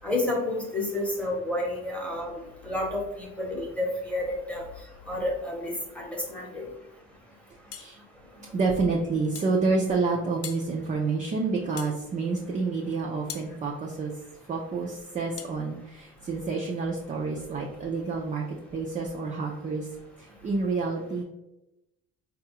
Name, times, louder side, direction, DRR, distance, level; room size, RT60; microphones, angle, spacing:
voice 1, 0.0-2.3 2.6-4.6 5.1-6.6, left 1 dB, 5° left, -2 dB, 0.9 m, -30 dB
sound 1, 7.7-7.9 9.3-9.6 10.4-10.7 11.8-12.0 13.3-13.5 15.4-15.6, left 9 dB, 50° left, 0.4 m, -40 dB
voice 2, 8.5-14.1 14.5-19.9 20.2-21.2, right 4 dB, 25° right, -2 dB, 0.4 m, -28 dB
3.9 x 2.3 x 2.9 m, 0.93 s
cardioid pair, 115°, 32 cm